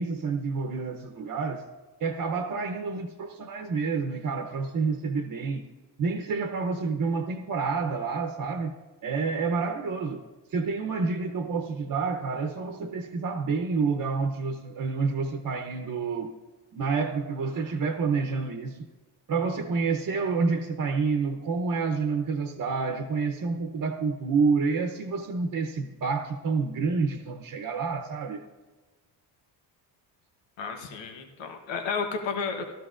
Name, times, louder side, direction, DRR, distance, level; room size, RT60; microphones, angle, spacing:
voice 1, 0.0-1.6 2.0-5.7 6.0-8.7 9.0-10.2 10.5-16.3 16.7-18.9 19.3-28.4, right 4 dB, 45° right, 4 dB, 0.8 m, -28 dB
voice 2, 30.6-32.7, left 5 dB, 85° left, 4 dB, 1.2 m, -32 dB
15.5 x 13.0 x 2.5 m, 1.3 s
cardioid pair, 115°, 43 cm